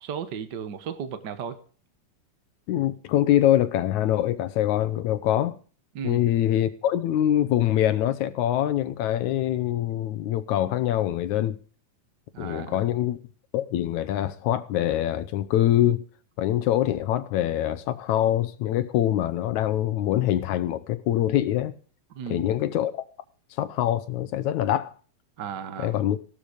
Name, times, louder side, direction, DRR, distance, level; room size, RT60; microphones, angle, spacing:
voice 1, 0.0-1.6 5.9-6.2 12.3-12.8 22.1-22.5 25.4-26.0, right 7 dB, 60° right, 1.1 m, -35 dB
voice 2, 2.7-5.6 6.0-11.6 12.4-13.2 13.5-16.0 16.4-21.7 22.3-23.0 23.6-24.9 25.8-26.2, left 12 dB, 75° left, 2.1 m, -24 dB
16.0 x 12.5 x 5.0 m
omnidirectional pair, 3.6 m